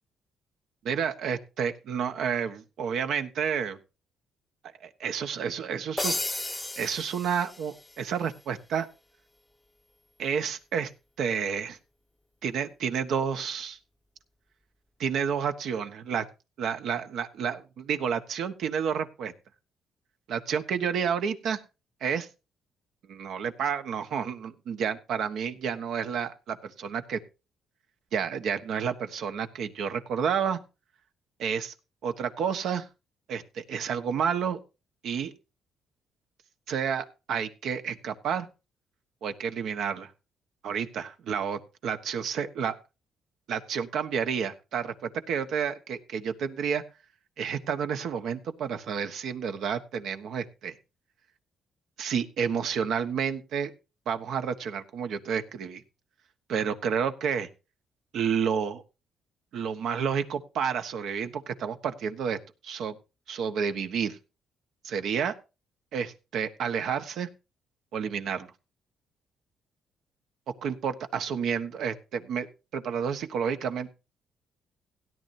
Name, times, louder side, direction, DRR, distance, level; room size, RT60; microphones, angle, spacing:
voice 1, 0.8-3.8 4.8-6.1 6.8-8.9 10.2-10.9 11.2-11.8 12.4-13.8 15.0-16.2 16.6-19.3 20.3-21.6 22.0-22.3 23.1-27.2 28.1-30.6 31.4-31.7 32.0-32.9 33.3-34.6 35.0-35.3 36.7-38.5 39.2-40.1 40.6-42.7 43.5-46.8 47.4-50.7 52.0-53.7 54.1-55.8 56.5-57.5 58.1-58.8 59.5-63.0 63.3-64.2 64.8-65.3 65.9-67.3 67.9-68.5 70.6-72.5 72.7-73.9, right 7 dB, 75° right, 8 dB, 1.3 m, -30 dB
sound 1, 6.0-8.0, left 1 dB, 10° left, 0.6 m, -33 dB
17.0 x 10.5 x 2.7 m, 0.29 s
cardioid pair, 90°, 0 cm